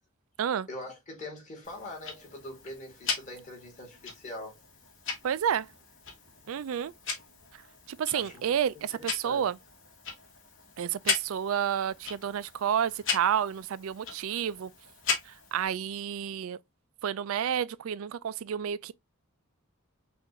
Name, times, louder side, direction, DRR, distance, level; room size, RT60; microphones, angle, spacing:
voice 1, 0.7-4.6 8.1-8.5 9.0-9.4, left 1 dB, 35° left, 2.0 m, -43 dB
Tick-tock, 1.6-15.7, left 5 dB, 60° left, 1.4 m, -38 dB
voice 2, 5.2-5.7 6.5-6.9 7.9-9.6 10.8-14.7 15.3-16.6 17.0-18.9, right 9 dB, 75° right, 0.3 m, -30 dB
5.7 x 2.5 x 3.0 m
head